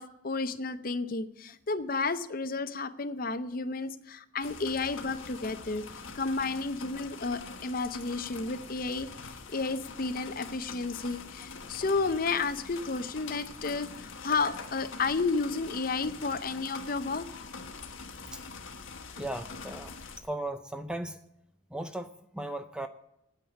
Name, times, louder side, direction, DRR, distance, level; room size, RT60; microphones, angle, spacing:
voice 1, 0.0-5.8 6.1-17.5, left 4 dB, 45° left, 11 dB, 0.6 m, -32 dB
sound 1, 4.4-20.2, left 4 dB, 70° left, 1.3 m, -44 dB
voice 2, 19.2-19.9 20.2-21.2 21.7-22.9, right 1 dB, 5° right, 9 dB, 0.4 m, -37 dB
9.1 x 8.7 x 8.2 m, 0.81 s
head